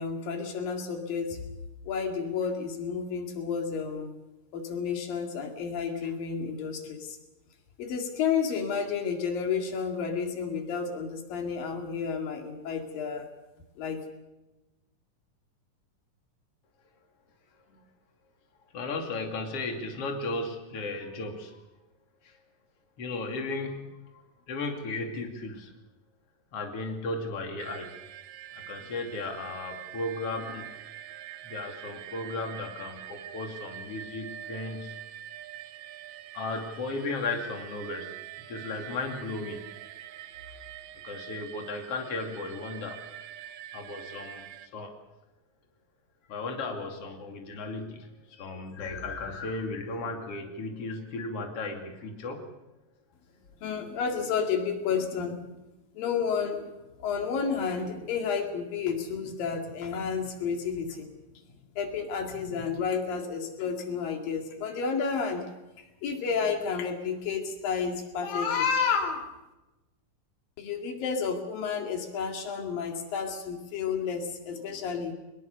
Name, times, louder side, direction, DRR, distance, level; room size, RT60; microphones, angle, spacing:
voice 1, 0.0-1.4 1.9-4.1 4.5-7.2 7.8-13.3 13.8-14.0 53.6-55.5 56.0-56.7 57.0-61.1 61.8-65.4 66.0-69.3 70.6-75.1, left 6 dB, 85° left, 4 dB, 4.0 m, -31 dB
voice 2, 18.7-21.6 22.2-22.3 23.0-23.8 24.5-25.7 26.5-28.0 28.5-30.7 31.4-34.9 36.3-38.1 38.5-39.7 41.0-43.2 43.7-44.9 46.3-52.4, left 3 dB, 45° left, 3 dB, 3.5 m, -35 dB
sound 1, 27.6-44.7, right 12 dB, 80° right, 2.5 m, -45 dB
22.5 x 21.5 x 6.8 m, 1.0 s
omnidirectional pair, 3.9 m